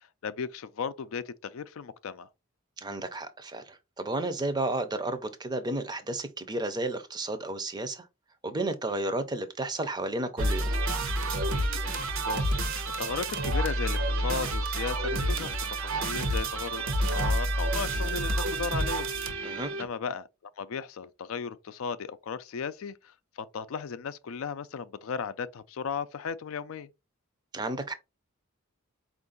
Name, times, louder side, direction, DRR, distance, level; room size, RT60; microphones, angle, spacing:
voice 1, 0.2-2.3 11.8-12.6 13.0-20.3 20.6-26.9, left 6 dB, 75° left, 0.4 m, -36 dB
voice 2, 2.8-8.1 8.4-10.7 19.4-19.7 27.5-27.9, right 2 dB, 20° right, 0.5 m, -32 dB
sound 1, 10.4-19.9, right 1 dB, 70° right, 0.8 m, -29 dB
4.5 x 2.5 x 3.8 m
head